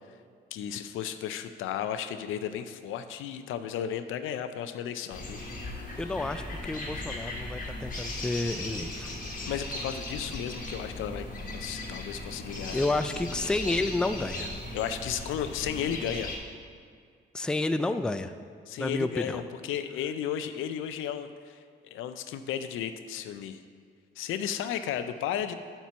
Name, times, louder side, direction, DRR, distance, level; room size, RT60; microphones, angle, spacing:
voice 1, 0.5-5.4 9.5-12.9 14.7-16.3 18.7-21.6 21.9-23.6 24.2-25.5, left 9 dB, 85° left, 10 dB, 0.5 m, -34 dB
sound 1, 5.1-16.4, left 2 dB, 45° left, 1.4 m, -37 dB
voice 2, 6.0-9.1 12.7-14.5 17.3-18.3 18.8-19.4, left 2 dB, 5° left, 9 dB, 0.3 m, -30 dB
7.3 x 4.5 x 6.9 m, 2.1 s
cardioid pair, 90°, 20 cm